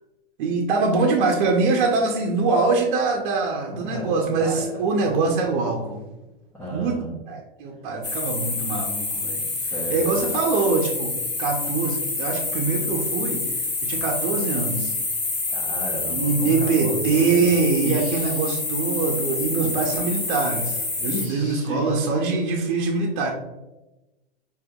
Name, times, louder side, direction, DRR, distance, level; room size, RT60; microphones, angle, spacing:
voice 1, 0.4-6.0 6.7-6.9 7.3-9.4 9.9-11.1 11.4-13.4 13.8-14.9 16.1-23.3, right 4 dB, 55° right, 0 dB, 0.8 m, -23 dB
voice 2, 3.7-5.2 6.5-7.2 9.4-10.4 15.5-17.5 17.8-18.6 19.5-19.8 21.0-22.4, right 1 dB, 5° left, -7 dB, 0.8 m, -34 dB
sound 1, 8.0-21.3, left 3 dB, 25° left, 1.1 m, -27 dB
5.1 x 2.9 x 2.3 m, 1.0 s
hypercardioid pair, 120°, 30 cm